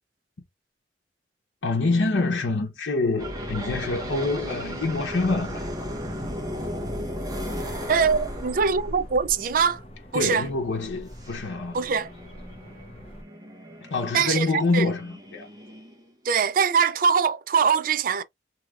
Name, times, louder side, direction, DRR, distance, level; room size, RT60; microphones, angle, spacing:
voice 1, 1.6-5.9 10.1-11.8 13.8-15.5, left 3 dB, 85° left, 0.8 m, -26 dB
sound 1, 3.2-9.4 11.2-16.1, equal, 20° right, 0.9 m, -35 dB
sound 2, 7.4-13.2, equal, 35° left, 0.7 m, -42 dB
voice 2, 7.9-9.8 10.1-10.4 11.7-12.1 14.1-14.9 16.3-18.2, right 6 dB, 50° right, 0.4 m, -22 dB
3.1 x 2.8 x 2.3 m
head